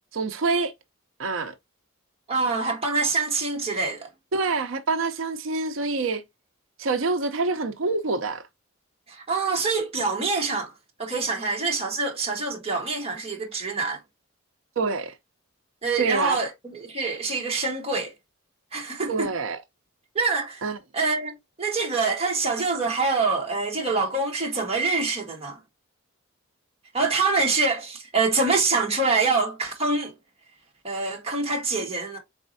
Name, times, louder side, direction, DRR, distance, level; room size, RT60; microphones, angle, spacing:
voice 1, 0.1-0.7 1.2-1.5 4.3-6.2 6.8-8.4 14.8-15.1 16.0-16.4 19.1-19.6 20.6-20.8, right 3 dB, 65° right, 0.6 m, -26 dB
voice 2, 2.3-4.1 9.1-10.7 11.0-14.0 15.8-18.1 18.7-19.3 20.1-20.6 20.9-25.6 26.9-30.1 30.8-32.2, right 3 dB, 30° right, 1.2 m, -25 dB
4.4 x 4.1 x 2.6 m
head